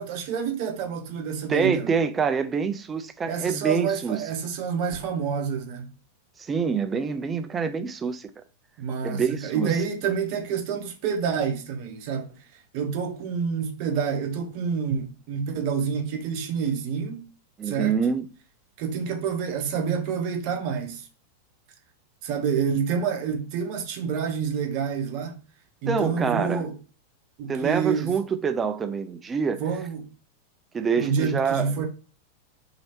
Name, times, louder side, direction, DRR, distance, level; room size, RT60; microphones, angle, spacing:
voice 1, 0.0-1.9 3.3-5.9 8.8-12.4 12.7-17.3 17.6-18.0 18.8-21.1 22.2-25.4 25.8-26.8 27.4-28.1 29.6-30.1 31.0-31.9, right 6 dB, 45° right, 0.8 m, -28 dB
voice 2, 1.5-4.2 6.4-8.3 9.0-9.8 17.6-18.2 25.9-26.7 27.5-29.6 30.7-31.7, right 6 dB, 20° right, 0.4 m, -26 dB
2.9 x 2.9 x 2.8 m
figure-of-eight pair, 90°, 0 cm